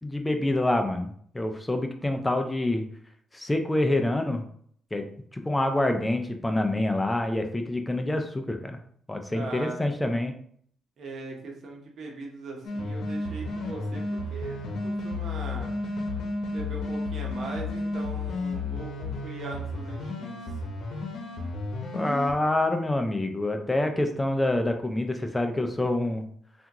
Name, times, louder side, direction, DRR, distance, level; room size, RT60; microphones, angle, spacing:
voice 1, 0.0-2.9 3.3-4.4 4.9-8.8 9.1-10.4 21.9-26.3, left 1 dB, 15° left, 6 dB, 0.5 m, -27 dB
voice 2, 9.3-9.9 11.0-15.8 16.5-20.4, right 2 dB, 55° right, 0 dB, 1.0 m, -40 dB
sound 1, 12.6-22.3, left 2 dB, 75° left, 0.8 m, -32 dB
3.4 x 2.5 x 2.9 m, 0.62 s
cardioid pair, 90°, 0 cm